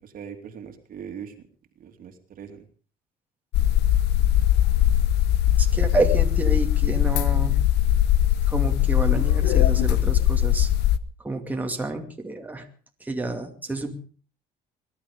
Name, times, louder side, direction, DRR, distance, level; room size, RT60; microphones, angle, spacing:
voice 1, 0.0-1.3 1.8-2.6, right 7 dB, 55° right, 5 dB, 2.8 m, -40 dB
sound 1, 3.5-11.0, left 12 dB, 80° left, 0.9 m, -20 dB
voice 2, 5.6-7.7 8.5-10.7 11.2-12.7 13.0-13.9, right 2 dB, 10° right, 2 dB, 2.5 m, -29 dB
21.5 x 11.5 x 5.2 m, 0.42 s
cardioid pair, 110°, 17 cm